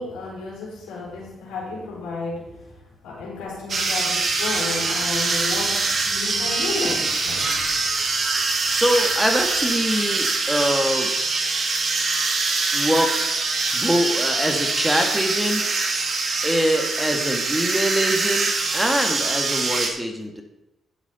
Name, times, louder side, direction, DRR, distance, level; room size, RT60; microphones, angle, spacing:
voice 1, 0.0-7.7, left 3 dB, 85° left, -4 dB, 3.7 m, -32 dB
sound 1, 3.7-19.9, right 3 dB, 50° right, 1.6 m, -24 dB
voice 2, 8.7-11.1 12.7-13.2 13.7-15.7 16.4-20.4, equal, 5° right, 3 dB, 1.8 m, -23 dB
11.0 x 7.3 x 4.2 m, 0.93 s
supercardioid pair, 55°, 0 cm